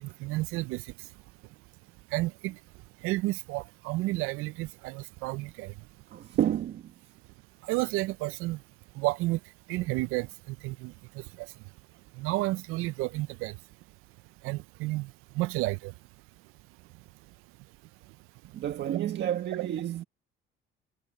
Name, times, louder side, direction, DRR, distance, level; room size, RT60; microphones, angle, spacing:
voice 1, 0.0-0.8 2.1-2.5 3.0-5.7 7.7-8.6 9.0-9.4 9.7-10.9 12.2-13.6 14.4-15.1 15.4-15.9 19.6-19.7, right 20 dB, 90° right, 0.4 m, -31 dB
voice 2, 6.1-6.9 18.5-20.0, right 11 dB, 55° right, 1.7 m, -30 dB
cardioid pair, 130°, 21 cm